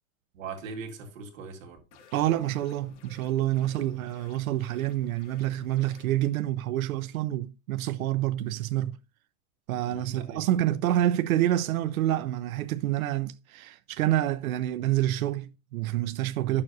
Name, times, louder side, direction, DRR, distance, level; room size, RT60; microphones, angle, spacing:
voice 1, 0.3-2.0 9.8-10.6 16.5-16.6, right 4 dB, 70° right, 2.1 m, -41 dB
sound 1, 1.9-6.3, left 6 dB, 60° left, 1.2 m, -53 dB
voice 2, 2.1-9.0 9.7-16.6, right 13 dB, 85° right, 0.7 m, -27 dB
10.5 x 7.0 x 2.6 m
supercardioid pair, 175°, 41 cm